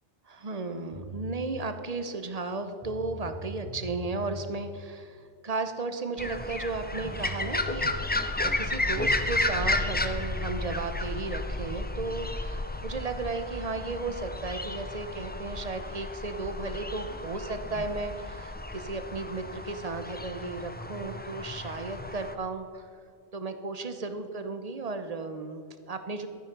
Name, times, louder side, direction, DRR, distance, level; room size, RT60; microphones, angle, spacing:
voice 1, 0.3-22.9 23.3-26.3, right 3 dB, 40° right, 8 dB, 0.9 m, -35 dB
sound 1, 0.9-1.5 2.5-2.6 2.8-4.5 6.7-6.8 7.1-7.7 9.0-10.7, left 1 dB, 5° right, 1.8 m, -41 dB
sound 2, 6.2-22.3, left 2 dB, 15° left, 0.4 m, -33 dB
13.0 x 9.2 x 5.3 m, 2.3 s
omnidirectional pair, 1.1 m